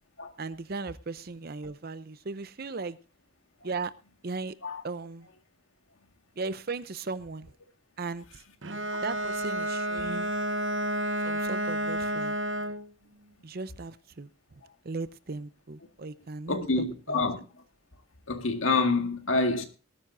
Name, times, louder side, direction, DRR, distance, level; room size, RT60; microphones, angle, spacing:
voice 1, 0.4-3.0 3.6-3.9 4.2-4.6 4.8-5.3 6.4-7.5 8.0-8.4 9.0-10.3 11.2-12.4 13.4-14.3 14.8-16.7 17.1-17.2, right 3 dB, 50° right, 0.7 m, -37 dB
Bowed string instrument, 8.6-12.9, right 1 dB, 65° right, 1.0 m, -30 dB
voice 2, 16.5-17.4 18.3-19.6, left 3 dB, 80° left, 1.9 m, -27 dB
19.0 x 12.5 x 2.6 m
head